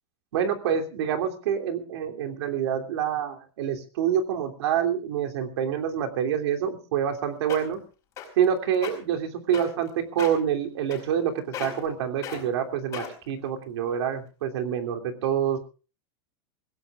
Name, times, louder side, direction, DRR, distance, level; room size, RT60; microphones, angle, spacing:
voice 1, 0.3-7.8 8.4-15.6, right 8 dB, 80° right, 4 dB, 3.1 m, -27 dB
sound 1, 7.1-7.2 7.5-7.8 8.2-8.4 8.7-8.9 9.5-9.9 10.2-10.4 10.9-11.3 11.5-11.9 12.2-12.4 12.9-13.3 13.9-14.0, left 9 dB, 20° left, 4.9 m, -36 dB
25.5 x 16.5 x 2.5 m, 0.35 s
supercardioid pair, 175°, 14 cm